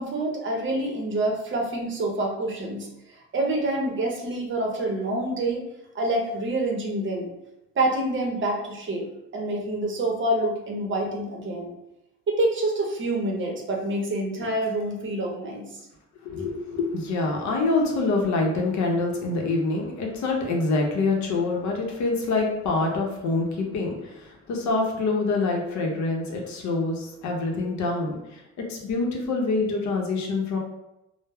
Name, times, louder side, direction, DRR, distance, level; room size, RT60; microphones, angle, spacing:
voice 1, 0.0-5.6 5.9-7.3 7.8-9.1 9.3-11.7 12.3-15.7, right 1 dB, 40° right, 1 dB, 0.7 m, -27 dB
voice 2, 16.2-28.4 28.7-30.6, left 3 dB, 70° left, 0 dB, 0.7 m, -26 dB
2.1 x 2.0 x 3.3 m, 0.89 s
cardioid pair, 90°, 30 cm